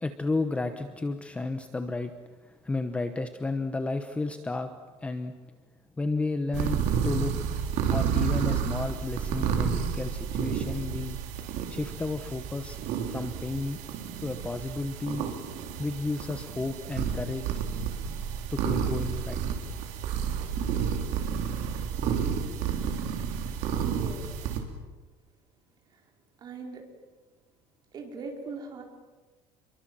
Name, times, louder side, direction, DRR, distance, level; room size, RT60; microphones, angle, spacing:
voice 1, 0.0-2.1 2.5-4.7 5.0-5.3 6.0-7.3 7.9-11.2 11.7-12.8 13.1-13.8 14.2-15.3 15.8-17.5 18.5-19.4, left 3 dB, 10° left, 8 dB, 1.0 m, -32 dB
sound 1, 6.5-24.6, right 7 dB, 60° right, 3.6 m, -31 dB
voice 2, 23.8-24.5 26.4-26.8 27.9-28.8, right 4 dB, 30° right, 2 dB, 4.5 m, -40 dB
29.0 x 23.5 x 7.6 m, 1.3 s
cardioid pair, 180°, 13 cm